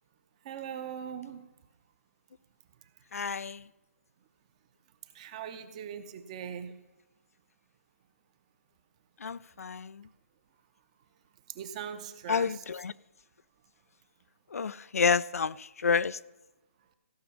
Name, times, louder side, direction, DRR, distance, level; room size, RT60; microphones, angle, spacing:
voice 1, 0.4-1.4 5.1-6.7 11.6-12.5, right 8 dB, 25° right, 0.8 m, -40 dB
voice 2, 3.1-3.6 9.2-10.1 12.3-12.9 14.5-16.2, left 5 dB, 80° left, 0.4 m, -29 dB
15.5 x 6.1 x 7.3 m
hypercardioid pair, 160°, 8 cm